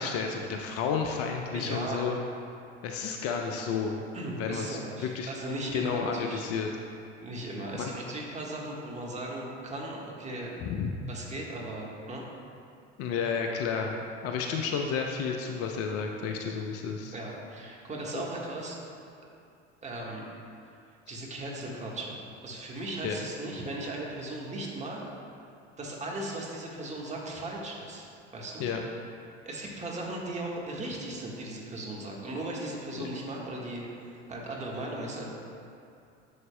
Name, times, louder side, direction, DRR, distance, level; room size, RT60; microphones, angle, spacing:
voice 1, 0.0-2.2 2.8-4.0 4.4-5.3 5.7-6.7 7.8-7.9 10.6-10.9 13.0-17.1 18.1-18.2 23.0-23.3 28.6-28.8 32.9-33.1, left 6 dB, 40° left, 3 dB, 0.6 m, -31 dB
voice 2, 1.5-2.1 4.1-6.5 7.2-10.6 11.1-12.2 17.1-18.8 19.8-20.2 21.1-25.0 25.8-28.1 28.3-28.7 29.4-35.3, right 1 dB, 20° right, -3 dB, 1.4 m, -37 dB
10.5 x 7.2 x 2.2 m, 2.5 s
figure-of-eight pair, 70°, 35 cm